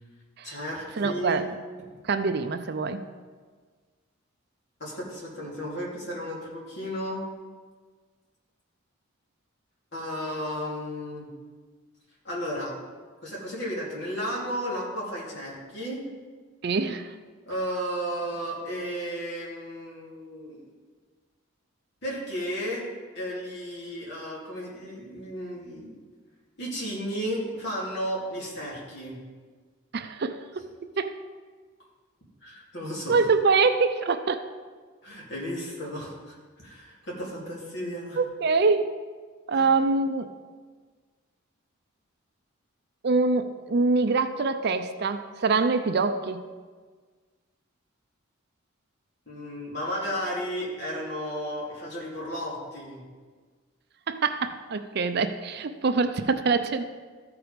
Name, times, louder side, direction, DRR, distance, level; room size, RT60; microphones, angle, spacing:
voice 1, 0.4-1.4 4.8-7.2 9.9-11.3 12.2-12.7 13.2-16.0 17.5-20.7 22.0-22.9 23.1-25.9 26.6-29.2 32.4-33.3 35.0-38.2 39.5-39.7 49.3-53.0, equal, 55° left, -5 dB, 2.8 m, -33 dB
voice 2, 1.0-1.4 2.0-3.0 16.6-17.1 29.9-30.4 31.0-31.1 33.1-34.4 38.2-38.9 39.5-40.3 43.0-46.4 54.1-56.8, right 4 dB, 50° right, 9 dB, 0.4 m, -24 dB
14.0 x 4.7 x 5.1 m, 1.5 s
head